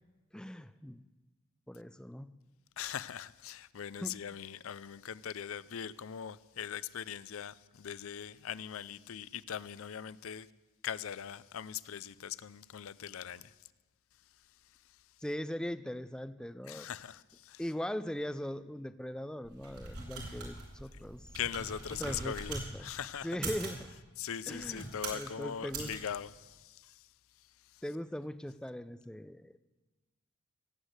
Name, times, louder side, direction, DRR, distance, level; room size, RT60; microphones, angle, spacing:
voice 1, 0.3-1.0 1.7-2.3 4.0-4.1 15.2-16.9 17.6-21.2 22.0-22.8 23.2-23.9 24.5-26.0 27.8-29.6, equal, 5° left, 0.4 m, -40 dB
voice 2, 2.8-10.5 10.8-13.5 16.7-17.6 21.3-23.4 24.2-27.0 27.7-27.8, left 8 dB, 65° left, 0.5 m, -41 dB
sound 1, 19.4-22.7 23.3-23.8 24.5-25.3 25.7-26.0, right 3 dB, 90° right, 4.2 m, -42 dB
17.5 x 8.3 x 8.0 m
head